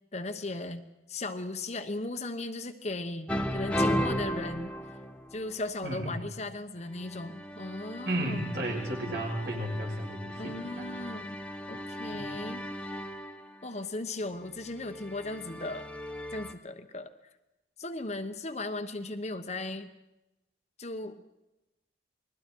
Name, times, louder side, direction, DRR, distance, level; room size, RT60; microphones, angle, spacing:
voice 1, 0.1-5.0 5.3-8.8 10.4-11.4 11.7-13.0 13.6-15.9 16.3-17.1 17.8-19.9 20.8-21.2, left 2 dB, 35° left, 7 dB, 1.1 m, -37 dB
sound 1, 3.3-5.7 6.9-13.5 14.6-16.5, equal, 5° left, 1.2 m, -36 dB
voice 2, 3.9-4.2 5.8-6.1 8.1-10.9 12.1-12.2, right 1 dB, 60° right, 0 dB, 5.9 m, -34 dB
29.0 x 21.0 x 4.6 m, 0.97 s
head